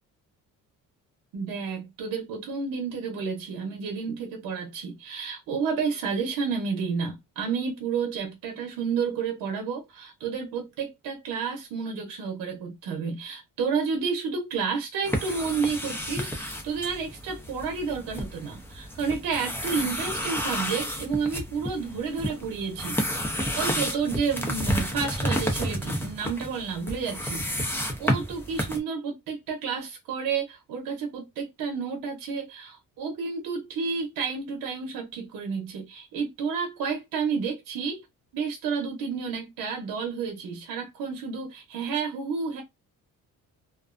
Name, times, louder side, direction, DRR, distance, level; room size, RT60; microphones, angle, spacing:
voice 1, 1.3-23.0 23.4-38.1 38.3-42.6, right 5 dB, 85° right, 0.8 m, -31 dB
sound 1, 15.0-28.8, equal, 5° left, 0.5 m, -31 dB
2.5 x 2.1 x 2.4 m
cardioid pair, 115°, 33 cm